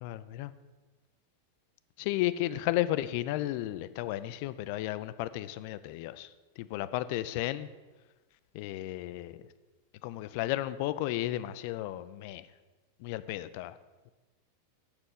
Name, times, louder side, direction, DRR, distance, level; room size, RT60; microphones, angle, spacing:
voice 1, 0.0-0.5 2.0-6.3 6.6-7.7 8.5-9.3 10.0-12.5 13.0-13.8, left 15 dB, 45° left, 14 dB, 0.4 m, -33 dB
7.3 x 6.2 x 5.8 m, 1.2 s
figure-of-eight pair, 90°, 0 cm